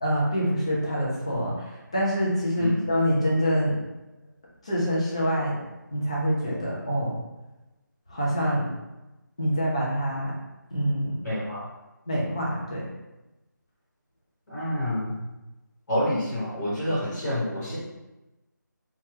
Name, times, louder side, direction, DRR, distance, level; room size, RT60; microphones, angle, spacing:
voice 1, 0.0-3.8 4.6-5.6 5.9-7.1 8.1-8.7 9.4-10.4 10.7-11.2 12.1-12.8, equal, 20° left, -5 dB, 0.3 m, -25 dB
voice 2, 11.2-11.6 14.5-15.2 15.9-17.8, left 1 dB, 50° left, -8 dB, 1.2 m, -28 dB
2.6 x 2.2 x 3.1 m, 1.0 s
figure-of-eight pair, 170°, 11 cm